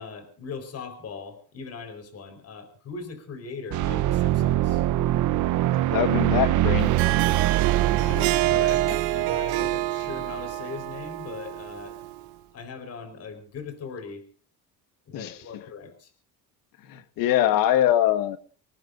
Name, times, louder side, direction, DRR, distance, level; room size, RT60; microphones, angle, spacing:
voice 1, 0.0-4.8 7.9-12.0 12.5-14.2 15.1-16.1, left 5 dB, 45° left, 9 dB, 4.6 m, -39 dB
sound 1, 3.7-10.4, right 14 dB, 60° right, 1.0 m, -24 dB
voice 2, 5.9-7.0 15.1-15.3 16.9-18.4, left 12 dB, 70° left, 12 dB, 1.7 m, -23 dB
Harp, 6.8-12.2, right 16 dB, 85° right, 2.2 m, -27 dB
26.0 x 19.0 x 2.6 m, 0.41 s
cardioid pair, 125°, 35 cm